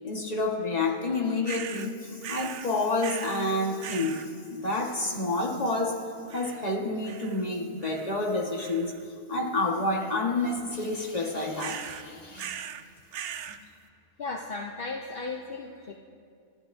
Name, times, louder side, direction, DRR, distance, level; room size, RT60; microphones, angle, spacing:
voice 1, 0.0-6.0 6.3-8.9 9.3-12.6, left 2 dB, 25° left, 0 dB, 1.5 m, -29 dB
sound 1, 1.4-1.9 2.2-2.7 3.0-3.5 3.8-4.3 6.3-6.7 7.0-7.4 7.8-8.2 8.6-9.0 11.6-12.0 12.4-12.8 13.1-13.6, right 9 dB, 80° right, 0.5 m, -39 dB
voice 2, 14.2-15.9, left 3 dB, 50° left, 1 dB, 0.8 m, -35 dB
29.5 x 13.5 x 2.7 m, 2.3 s
omnidirectional pair, 1.6 m